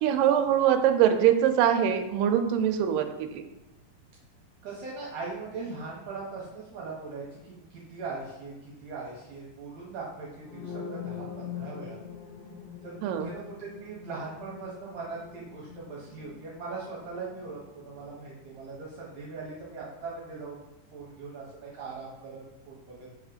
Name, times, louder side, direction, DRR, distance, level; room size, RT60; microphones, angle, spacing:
voice 1, 0.0-3.5 13.0-13.3, right 9 dB, 85° right, 6 dB, 2.2 m, -23 dB
voice 2, 4.6-12.0 12.8-20.7 20.9-23.1, right 4 dB, 65° right, -5 dB, 2.1 m, -40 dB
sound 1, 10.4-18.2, left 7 dB, 80° left, 1.6 m, -43 dB
5.3 x 3.6 x 5.0 m, 0.97 s
omnidirectional pair, 3.8 m